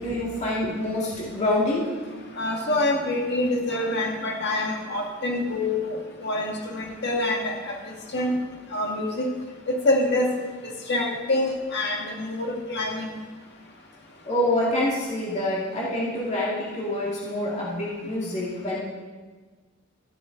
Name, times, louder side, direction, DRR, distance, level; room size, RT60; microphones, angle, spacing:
voice 1, 0.0-1.9 14.2-18.8, left 1 dB, 35° left, -6 dB, 2.2 m, -26 dB
voice 2, 2.3-8.4 8.7-9.3 9.7-10.3 10.6-13.2, left 1 dB, 55° left, 0 dB, 1.9 m, -26 dB
12.5 x 9.5 x 3.9 m, 1.4 s
head